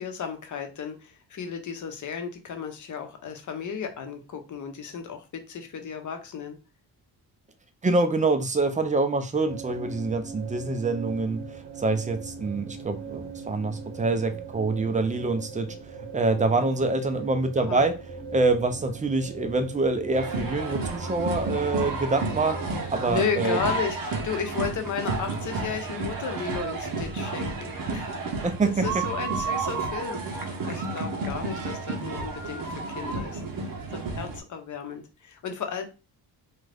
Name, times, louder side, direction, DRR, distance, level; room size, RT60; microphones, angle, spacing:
voice 1, 0.0-6.6 17.6-17.8 23.1-28.1 28.6-35.8, left 6 dB, 45° left, 6 dB, 0.8 m, -34 dB
voice 2, 7.8-15.7 16.0-18.0 18.3-23.6 28.4-28.9, right 3 dB, 20° right, 7 dB, 0.4 m, -26 dB
sound 1, 9.5-23.2, right 4 dB, 80° right, 0.8 m, -40 dB
sound 2, 20.1-34.4, right 3 dB, 55° right, 0.8 m, -31 dB
2.5 x 2.3 x 3.3 m, 0.31 s
cardioid pair, 85°, 41 cm